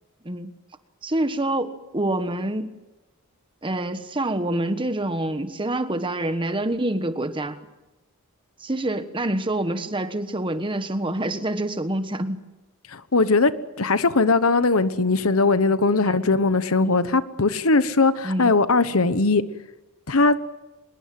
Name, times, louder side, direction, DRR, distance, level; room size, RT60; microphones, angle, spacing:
voice 1, 1.0-2.7 3.6-7.6 8.6-12.4 16.1-16.2 16.9-17.1 18.2-18.5, right 1 dB, 20° right, 10 dB, 1.3 m, -26 dB
voice 2, 12.9-13.5 13.8-19.4 20.1-20.4, left 3 dB, 70° left, 13 dB, 1.2 m, -20 dB
24.5 x 22.0 x 7.8 m, 1.0 s
head